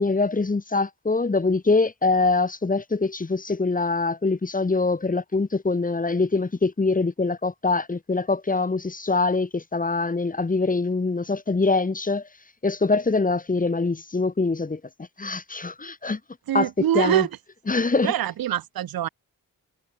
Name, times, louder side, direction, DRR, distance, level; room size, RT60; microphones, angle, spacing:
voice 1, 0.0-12.2 12.6-14.8 15.2-16.2 16.5-17.3 17.7-18.1, left 3 dB, 25° left, 0.9 m, -24 dB
voice 2, 16.5-17.3 18.0-19.1, right 11 dB, 80° right, 0.6 m, -24 dB
wide cardioid pair, 75°, 35 cm